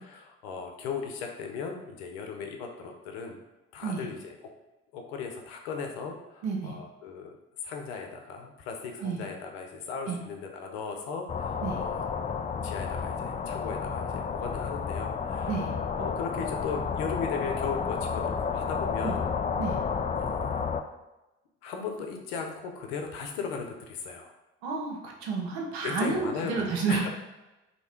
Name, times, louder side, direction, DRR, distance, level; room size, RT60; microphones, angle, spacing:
voice 1, 0.0-3.4 3.7-4.3 4.9-7.3 7.6-12.0 12.6-15.6 16.0-19.3 20.2-20.7 21.6-24.3 25.8-27.1, left 5 dB, 90° left, 3 dB, 0.7 m, -37 dB
voice 2, 6.4-6.8 9.0-9.2 10.1-10.2 11.6-11.8 15.5-15.7 19.0-19.2 19.6-19.8 24.6-27.0, right 4 dB, 90° right, -1 dB, 0.9 m, -30 dB
sound 1, 11.3-20.8, left 6 dB, 25° left, 0.3 m, -31 dB
3.3 x 2.8 x 4.3 m, 1.0 s
hypercardioid pair, 55°, 31 cm